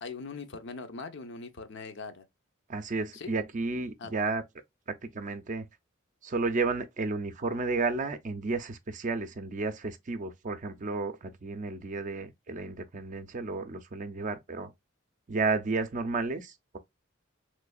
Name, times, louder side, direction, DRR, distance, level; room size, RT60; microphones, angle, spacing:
voice 1, 0.0-2.2 3.1-3.3 4.0-4.2, left 4 dB, 60° left, 0.6 m, -41 dB
voice 2, 2.7-4.4 4.9-5.7 6.2-14.7 15.3-16.8, right 3 dB, 40° right, 0.5 m, -32 dB
3.5 x 3.2 x 2.3 m
head